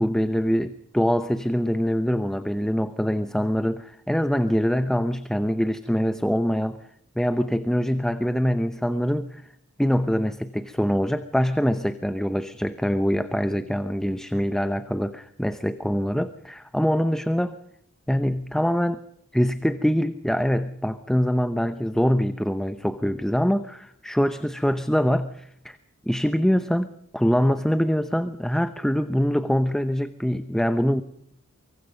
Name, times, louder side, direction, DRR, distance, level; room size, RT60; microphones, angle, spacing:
voice 1, 0.0-6.9 7.2-9.4 9.8-17.5 18.1-19.0 19.3-25.8 26.1-31.0, equal, ahead, 10 dB, 0.7 m, -24 dB
24.5 x 23.5 x 5.3 m, 0.73 s
head